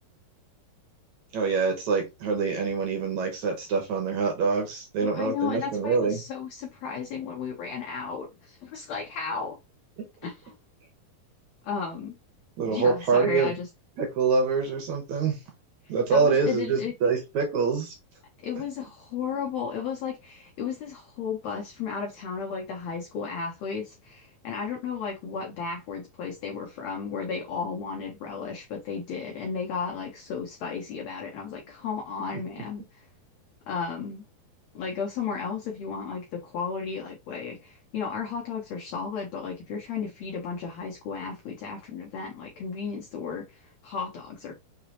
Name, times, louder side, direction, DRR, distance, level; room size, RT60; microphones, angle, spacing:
voice 1, 1.3-6.2 12.6-13.5 14.0-15.4 15.9-18.0, right 4 dB, 65° right, 2.0 m, -25 dB
voice 2, 5.0-9.6 10.2-10.6 11.6-12.2 12.7-13.7 15.8-16.9 18.4-33.1 33.7-34.2 34.7-44.5, left 6 dB, 90° left, 1.5 m, -34 dB
5.9 x 2.9 x 2.9 m
omnidirectional pair, 4.1 m